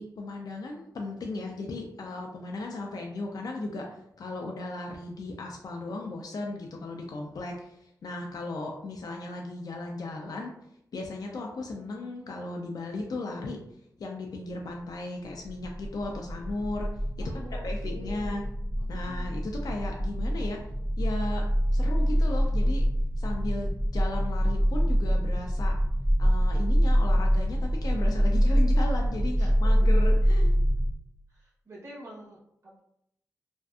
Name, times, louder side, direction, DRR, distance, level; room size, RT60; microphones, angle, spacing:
voice 1, 0.0-10.5 10.9-13.6 14.0-16.9 17.2-18.4 18.9-20.6 21.0-21.5 21.7-22.9 23.2-25.8 26.2-30.5, left 2 dB, 65° left, 1 dB, 0.4 m, -36 dB
sound 1, 15.5-30.9, equal, 10° right, 0.4 m, -25 dB
voice 2, 17.2-18.5 18.8-19.3 29.4-29.5 31.3-32.8, equal, 40° right, -6 dB, 0.8 m, -47 dB
2.5 x 2.3 x 2.3 m, 0.74 s
cardioid pair, 70°, 7 cm